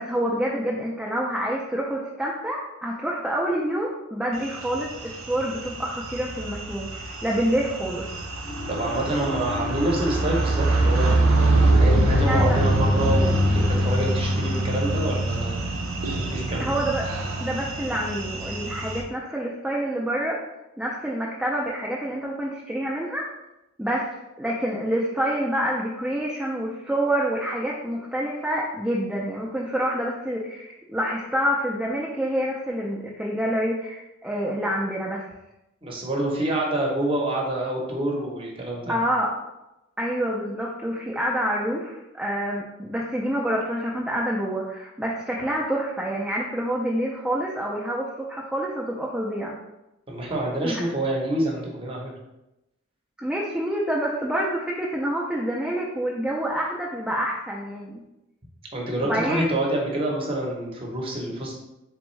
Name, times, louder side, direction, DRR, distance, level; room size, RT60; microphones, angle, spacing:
voice 1, 0.0-8.1 12.2-12.6 16.6-17.1 17.4-20.4 20.8-23.3 23.8-24.1 24.4-35.2 38.9-39.3 40.0-49.6 50.6-50.9 53.2-58.0 59.0-59.5, right 1 dB, 5° right, -4 dB, 0.3 m, -27 dB
sound 1, 4.4-19.0, right 1 dB, 85° right, 0.6 m, -24 dB
sound 2, 8.4-13.7, left 2 dB, 15° left, 0.7 m, -37 dB
voice 2, 8.7-15.6 16.3-16.7 35.8-39.0 50.1-52.1 58.7-61.5, right 1 dB, 25° right, -1 dB, 0.7 m, -27 dB
3.5 x 3.5 x 3.1 m, 0.94 s
head